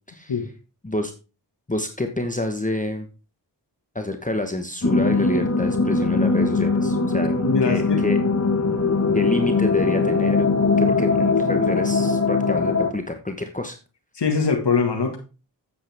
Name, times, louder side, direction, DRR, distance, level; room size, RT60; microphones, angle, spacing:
voice 1, 0.1-0.4 0.8-1.1 1.7-3.1 3.9-7.3 7.6-8.2 9.1-13.8, left 2 dB, 20° left, 5 dB, 1.1 m, -28 dB
sound 1, 4.8-12.9, left 4 dB, 35° left, 1.5 m, -21 dB
voice 2, 7.4-8.0 14.2-15.2, left 5 dB, 70° left, 2 dB, 1.7 m, -22 dB
8.7 x 8.2 x 3.5 m, 0.32 s
cardioid pair, 50°, 42 cm